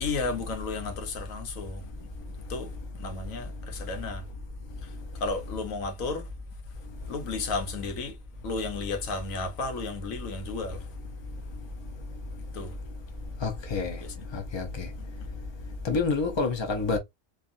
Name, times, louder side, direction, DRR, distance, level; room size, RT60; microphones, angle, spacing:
voice 1, 0.0-1.8 2.5-2.7 3.0-4.2 5.2-6.3 7.1-8.2 8.4-10.8 12.5-12.7 14.0-14.3, left 3 dB, 90° left, 1.2 m, -33 dB
voice 2, 13.4-14.0 14.3-14.9 15.8-17.0, left 4 dB, 30° left, 0.5 m, -28 dB
2.8 x 2.4 x 2.5 m
omnidirectional pair, 1.4 m